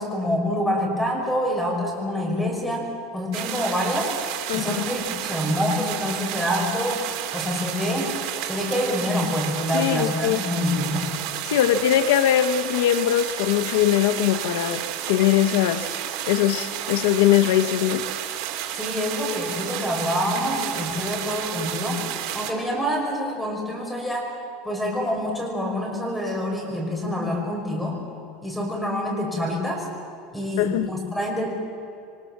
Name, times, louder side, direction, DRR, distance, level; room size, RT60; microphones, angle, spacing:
voice 1, 0.0-4.1 4.5-8.1 8.4-11.1 18.8-22.1 22.3-24.4 24.6-28.0 28.4-29.9 30.3-31.5, left 1 dB, 5° left, 5.7 m, -26 dB
sound 1, 3.3-22.5, right 11 dB, 55° right, 3.2 m, -31 dB
voice 2, 4.5-4.8 9.7-10.4 11.4-16.0 16.3-18.1 30.6-30.9, left 11 dB, 80° left, 1.0 m, -21 dB
27.5 x 24.0 x 7.4 m
supercardioid pair, 155°, 0 cm